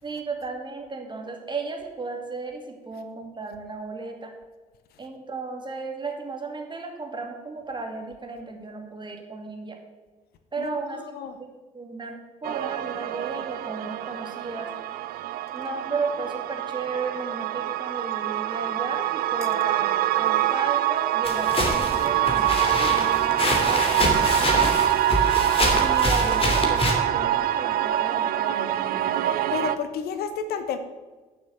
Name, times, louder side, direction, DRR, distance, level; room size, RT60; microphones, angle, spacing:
voice 1, 0.0-4.3 5.0-9.8 10.5-11.0 11.4-14.7 15.5-24.8 25.7-29.3, right 3 dB, 25° right, 2 dB, 2.6 m, -34 dB
sound 1, 12.4-29.8, right 12 dB, 50° right, 0.6 m, -25 dB
sound 2, 21.2-26.9, left 1 dB, 30° left, 2.7 m, -26 dB
voice 2, 29.5-30.8, left 7 dB, 55° left, 10 dB, 0.9 m, -30 dB
12.0 x 6.8 x 7.0 m, 1.3 s
figure-of-eight pair, 45°, 19 cm